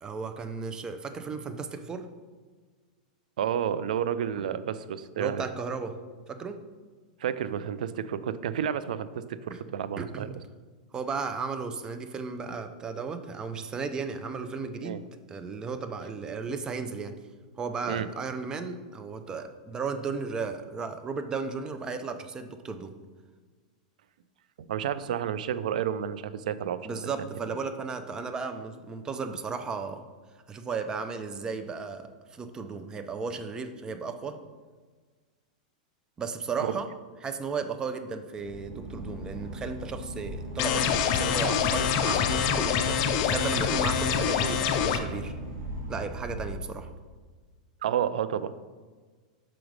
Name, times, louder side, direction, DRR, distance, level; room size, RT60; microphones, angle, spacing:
voice 1, 0.0-2.1 5.2-6.0 6.3-6.6 9.5-9.6 10.0-10.3 10.9-15.0 15.3-17.2 17.6-22.9 26.8-30.0 30.5-34.4 36.2-36.9 37.2-45.3 45.9-46.9, right 4 dB, 15° right, 8 dB, 0.4 m, -35 dB
voice 2, 3.4-5.4 7.2-9.4 9.7-10.3 14.8-15.0 17.9-18.1 24.6-26.8 27.2-27.5 36.7-36.8 47.8-48.5, right 9 dB, 80° right, 14 dB, 0.4 m, -30 dB
Boat Water vehicle / Engine, 38.4-47.3, right 1 dB, 60° right, 1.3 m, -39 dB
sound 1, 40.6-45.0, left 8 dB, 45° left, 0.5 m, -25 dB
6.0 x 5.1 x 3.2 m, 1.4 s
supercardioid pair, 140°, 4 cm